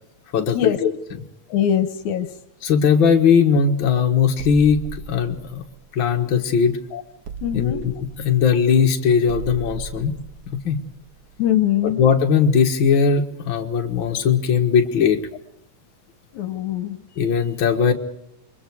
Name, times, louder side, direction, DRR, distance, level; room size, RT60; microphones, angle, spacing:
voice 1, 0.3-0.9 2.6-5.6 5.9-6.8 7.5-10.2 10.6-10.8 11.8-15.2 17.2-17.9, left 6 dB, 45° left, 3 dB, 2.1 m, -19 dB
voice 2, 1.5-2.3 6.9-7.0 7.4-7.8 11.4-12.0 16.3-17.0, left 10 dB, 75° left, 10 dB, 2.3 m, -22 dB
sound 1, 4.4-6.7 7.2-11.9, right 6 dB, 55° right, 2.2 m, -37 dB
28.5 x 23.0 x 4.8 m, 0.79 s
omnidirectional pair, 3.4 m